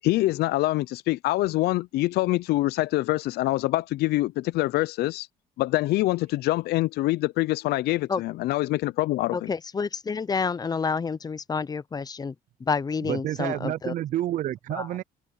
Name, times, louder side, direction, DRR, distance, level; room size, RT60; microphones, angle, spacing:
voice 1, 0.0-5.3 5.6-9.5, left 18 dB, 70° left, 0.5 m, -25 dB
voice 2, 9.3-12.3 12.6-13.9 14.7-14.9, left 5 dB, 25° left, 0.6 m, -29 dB
voice 3, 13.0-15.0, right 13 dB, 50° right, 0.4 m, -29 dB
cardioid pair, 110°, 17 cm